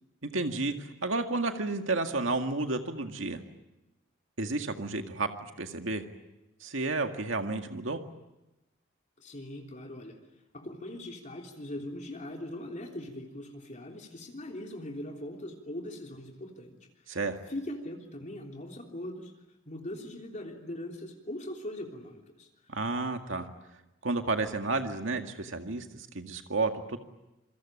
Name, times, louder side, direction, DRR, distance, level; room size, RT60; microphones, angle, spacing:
voice 1, 0.2-3.4 4.4-6.0 6.6-8.0 17.1-17.4 22.7-23.5 24.0-27.0, right 3 dB, 85° right, 5 dB, 2.0 m, -31 dB
voice 2, 9.2-10.2 10.5-17.2 17.5-19.3 19.7-22.5, left 1 dB, 40° left, 1 dB, 3.4 m, -41 dB
27.5 x 24.0 x 8.7 m, 0.95 s
head